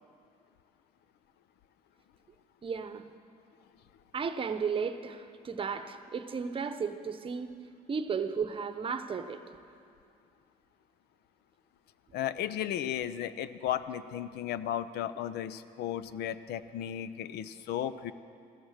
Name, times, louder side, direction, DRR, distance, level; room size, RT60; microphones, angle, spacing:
voice 1, 2.6-3.0 4.1-7.5 7.9-9.4, right 6 dB, 30° right, 10 dB, 0.9 m, -34 dB
voice 2, 12.1-18.1, left 10 dB, 75° left, 14 dB, 0.7 m, -35 dB
16.0 x 13.5 x 6.5 m, 2.5 s
cardioid pair, 110°, 17 cm